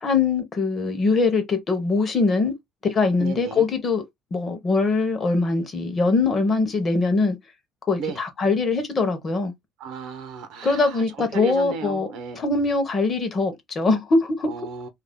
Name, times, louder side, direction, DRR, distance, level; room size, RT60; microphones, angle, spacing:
voice 1, 0.0-2.5 2.9-4.0 4.3-7.4 7.9-9.5 10.6-12.1 12.3-14.5, left 3 dB, 25° left, 0.7 m, -22 dB
voice 2, 3.2-3.6 8.0-8.2 9.8-12.4 14.5-14.9, right 5 dB, 65° right, 0.7 m, -34 dB
2.3 x 2.2 x 3.4 m
cardioid pair, 170°, 0 cm